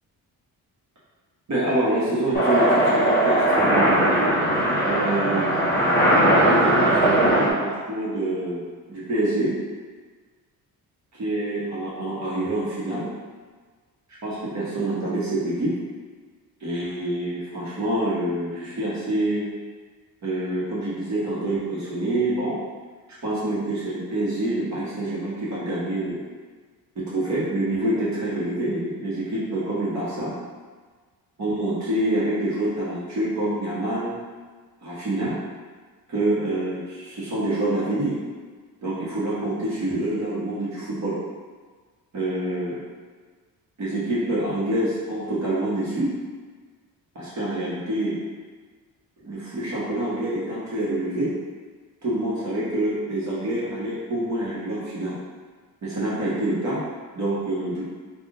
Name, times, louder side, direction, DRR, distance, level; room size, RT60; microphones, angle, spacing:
voice 1, 1.5-4.3 4.8-5.6 6.4-8.6 8.9-9.5 11.1-13.1 14.2-15.7 16.6-19.5 20.2-22.6 23.2-26.2 26.9-30.3 31.4-34.2 34.8-35.4 36.1-38.2 38.8-41.2 42.1-42.8 43.8-46.1 47.1-48.2 49.2-51.3 52.0-55.2 55.8-56.8 57.1-57.9, right 1 dB, 50° right, -8 dB, 1.2 m, -26 dB
sound 1, 2.3-7.5, right 1 dB, 25° left, 1.3 m, -19 dB
3.4 x 2.4 x 3.7 m, 1.5 s
cardioid pair, 100°, 37 cm